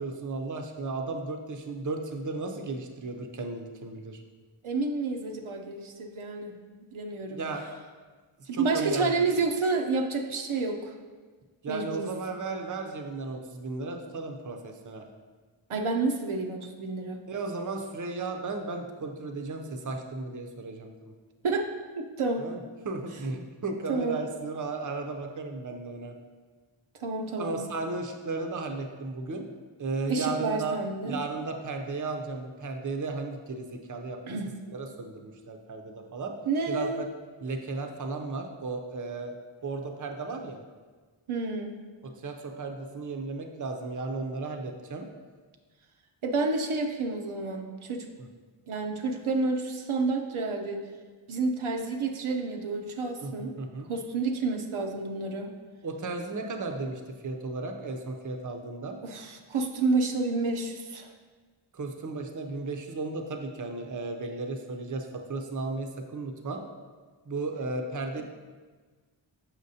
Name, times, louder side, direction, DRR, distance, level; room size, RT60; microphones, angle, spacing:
voice 1, 0.0-4.2 7.3-7.6 8.5-9.3 11.6-15.1 17.3-21.1 22.4-22.6 22.8-26.1 27.4-29.4 29.8-30.8 31.0-34.2 34.7-36.3 36.7-37.1 37.4-39.3 39.6-40.6 42.0-45.1 53.2-53.9 55.8-59.0 61.7-66.6 67.3-68.2, right 3 dB, 40° right, 4 dB, 0.6 m, -35 dB
voice 2, 4.6-6.5 6.9-7.4 8.5-10.9 11.7-12.1 15.7-17.2 21.4-21.7 21.9-22.5 23.9-24.2 27.0-27.6 30.1-31.2 34.3-34.5 36.5-37.0 41.3-41.8 46.2-48.1 48.7-50.8 51.3-53.5 53.9-55.5 59.0-61.1, right 3 dB, 80° right, 2 dB, 0.7 m, -29 dB
6.5 x 5.7 x 2.7 m, 1.4 s
wide cardioid pair, 60°, 49 cm